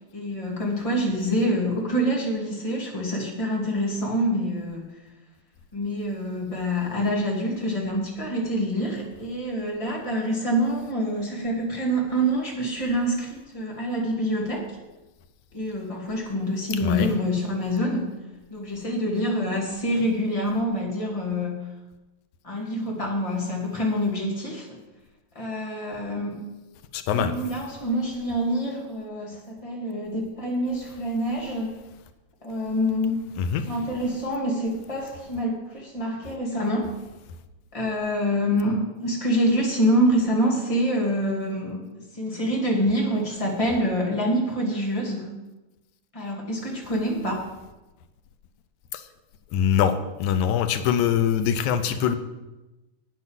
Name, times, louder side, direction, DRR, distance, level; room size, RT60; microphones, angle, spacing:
voice 1, 0.1-4.9 5.7-14.7 15.5-18.1 18.5-21.7 22.4-24.8 25.3-26.4 27.1-31.7 32.4-33.2 33.7-36.9 37.7-45.3 46.1-47.5, equal, 10° left, -2 dB, 2.1 m, -26 dB
voice 2, 16.8-17.1 26.9-27.4 33.4-33.6 48.9-49.0 49.5-49.9 50.2-52.2, left 8 dB, 90° left, 10 dB, 2.2 m, -23 dB
9.3 x 8.2 x 7.3 m, 1.1 s
omnidirectional pair, 3.3 m